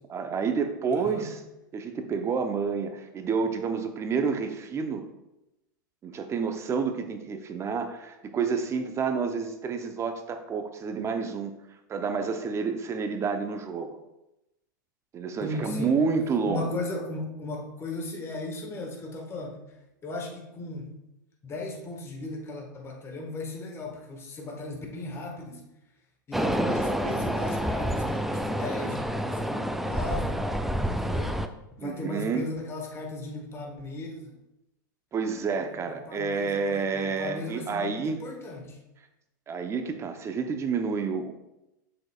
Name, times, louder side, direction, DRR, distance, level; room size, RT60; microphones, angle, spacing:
voice 1, 0.1-1.4 1.7-5.0 6.0-11.5 11.9-14.0 15.1-16.8 31.8-32.4 35.1-38.2 39.5-41.3, right 5 dB, 25° right, 7 dB, 0.8 m, -29 dB
voice 2, 0.9-1.3 15.4-16.0 16.5-19.6 20.0-20.9 21.4-25.6 26.3-30.5 30.9-31.4 31.8-34.3 35.6-38.8, left 2 dB, 25° left, 2 dB, 1.5 m, -37 dB
sound 1, 26.3-31.5, equal, ahead, 0.4 m, -28 dB
7.5 x 6.5 x 2.4 m, 0.91 s
hypercardioid pair, 105°, 11 cm